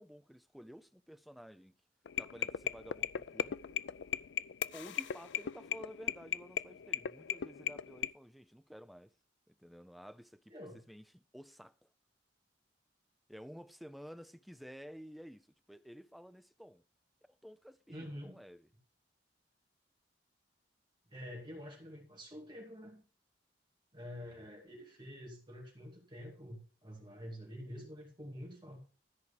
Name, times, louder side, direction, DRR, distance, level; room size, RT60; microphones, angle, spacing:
voice 1, 0.0-1.7 2.2-3.8 4.7-9.1 9.5-10.5 10.9-11.9 13.3-16.8 17.3-18.7, equal, ahead, 0.4 m, -52 dB
sound 1, 2.1-8.1, left 9 dB, 70° left, 0.4 m, -37 dB
voice 2, 17.9-18.4 21.1-23.0 23.9-28.8, equal, 25° right, 2.6 m, -47 dB
13.5 x 4.7 x 6.8 m
head